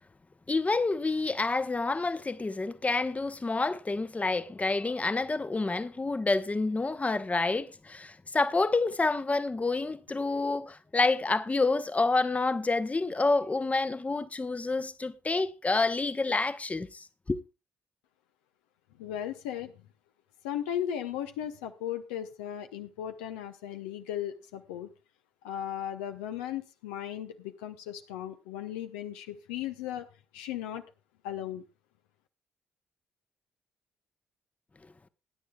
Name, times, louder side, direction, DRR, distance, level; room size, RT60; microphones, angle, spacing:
voice 1, 0.5-17.4, left 3 dB, 20° left, 0.8 m, -28 dB
voice 2, 19.0-19.9 20.4-24.9 25.4-30.1 30.3-30.8 31.2-31.6, left 10 dB, 75° left, 0.7 m, -36 dB
20.0 x 9.9 x 2.3 m
figure-of-eight pair, 40°, 6 cm